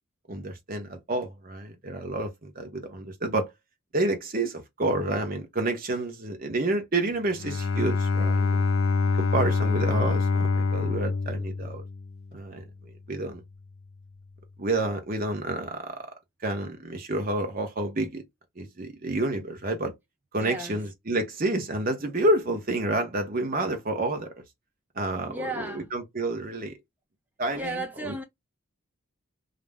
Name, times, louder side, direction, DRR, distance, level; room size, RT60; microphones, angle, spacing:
voice 1, 0.3-3.5 3.9-8.6 9.2-11.8 12.3-12.6 13.1-13.4 14.6-16.0 16.4-18.2 18.6-19.9 20.3-24.3 25.0-26.8 27.4-28.1, right 2 dB, 40° right, 0.8 m, -29 dB
Bowed string instrument, 7.3-12.3, left 4 dB, 60° left, 0.3 m, -25 dB
voice 2, 20.4-20.8 25.3-25.9 27.5-28.2, right 1 dB, 10° right, 0.5 m, -34 dB
2.5 x 2.0 x 3.3 m
head